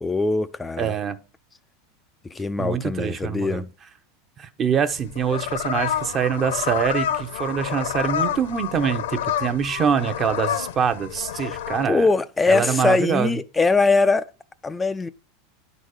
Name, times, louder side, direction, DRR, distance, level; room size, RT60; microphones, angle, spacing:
voice 1, 0.0-0.9 2.3-3.7 11.4-11.6 11.8-14.2 14.6-15.1, left 3 dB, 10° left, 0.4 m, -22 dB
voice 2, 0.8-1.2 2.6-3.6 4.4-12.1 12.5-13.4, right 7 dB, 25° right, 0.8 m, -24 dB
sound 1, 4.9-11.8, left 9 dB, 90° left, 1.0 m, -28 dB
10.0 x 4.1 x 6.4 m
supercardioid pair, 145°, 0 cm